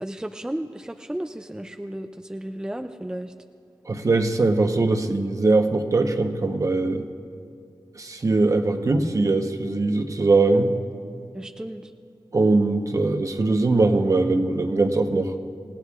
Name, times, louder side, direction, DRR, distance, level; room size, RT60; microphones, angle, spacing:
voice 1, 0.0-3.3 11.3-11.9, right 1 dB, 10° right, 7 dB, 0.4 m, -33 dB
voice 2, 3.9-7.1 7.9-10.7 12.3-15.3, right 3 dB, 45° right, 5 dB, 1.0 m, -21 dB
28.0 x 17.5 x 2.4 m, 2.4 s
wide cardioid pair, 100°, 8 cm